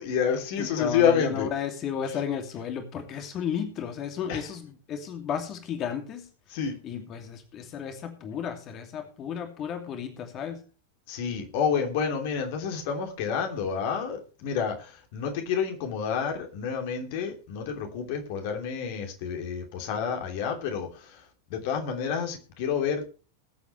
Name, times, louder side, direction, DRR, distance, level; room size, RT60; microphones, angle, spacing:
voice 1, 0.0-1.5 2.1-2.2 4.3-4.5 6.5-6.8 11.1-21.2 21.5-23.1, left 7 dB, 50° left, 3.0 m, -29 dB
voice 2, 0.6-6.2 6.8-10.6, left 8 dB, 30° left, 2.6 m, -33 dB
21.0 x 8.3 x 3.3 m
figure-of-eight pair, 90°, 0 cm